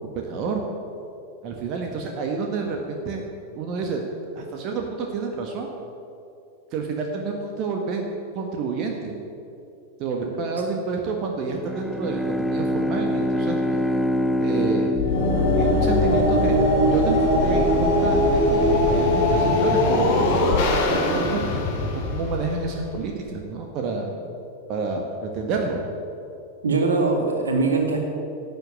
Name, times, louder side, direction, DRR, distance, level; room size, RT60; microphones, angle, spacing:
voice 1, 0.3-0.6 1.4-3.2 3.5-4.0 4.3-5.7 6.7-8.0 8.3-9.1 10.0-14.0 14.4-14.9 15.6-16.6 16.9-21.4 21.9-24.1 24.7-25.8, right 4 dB, 40° right, 2 dB, 1.5 m, -29 dB
Bowed string instrument, 11.6-16.3, left 1 dB, 5° right, 0.7 m, -25 dB
sound 1, 15.0-23.1, left 1 dB, 50° left, 2.6 m, -20 dB
voice 2, 26.6-28.0, right 3 dB, 70° right, 2 dB, 2.2 m, -21 dB
11.0 x 8.2 x 9.9 m, 2.6 s
figure-of-eight pair, 90°, 0 cm